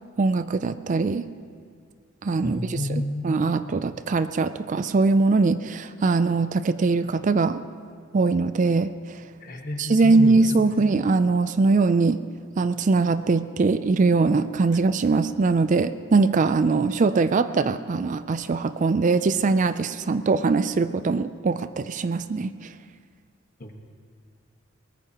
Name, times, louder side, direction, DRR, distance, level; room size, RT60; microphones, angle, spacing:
voice 1, 0.2-1.2 2.2-7.6 8.1-9.2 9.8-12.2 12.6-22.7, right 3 dB, 35° right, 12 dB, 0.4 m, -22 dB
voice 2, 2.4-3.2 9.4-10.4 23.6-23.8, left 1 dB, 45° left, 3 dB, 1.4 m, -30 dB
22.0 x 19.5 x 3.0 m, 2.1 s
head